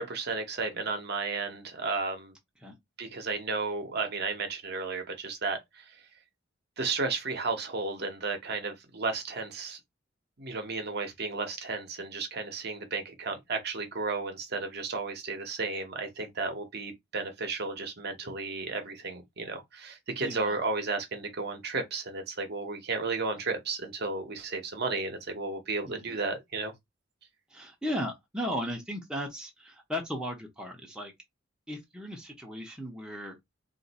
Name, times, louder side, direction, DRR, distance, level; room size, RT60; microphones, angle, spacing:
voice 1, 0.0-2.3 3.0-5.8 6.8-9.8 10.4-26.7, right 3 dB, 55° right, 0.8 m, -33 dB
voice 2, 20.2-20.6 25.8-26.2 27.5-31.1 31.7-33.4, equal, 5° right, 0.7 m, -36 dB
2.5 x 2.5 x 4.0 m
head